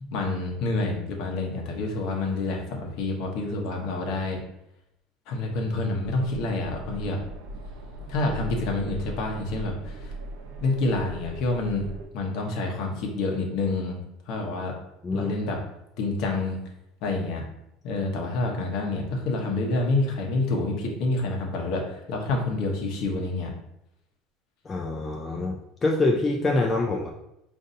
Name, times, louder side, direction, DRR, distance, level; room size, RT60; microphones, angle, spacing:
voice 1, 0.1-4.4 5.3-7.2 8.1-10.1 10.6-11.9 12.1-14.0 14.3-14.7 15.1-15.6 16.0-16.6 17.0-17.4 17.8-23.5, left 2 dB, 50° left, 1 dB, 0.8 m, -28 dB
sound 1, 6.0-12.1, right 1 dB, 85° right, 0.6 m, -39 dB
voice 2, 24.7-27.1, left 2 dB, 15° left, -1 dB, 0.3 m, -25 dB
5.2 x 2.6 x 2.6 m, 0.81 s
cardioid pair, 170°, 0 cm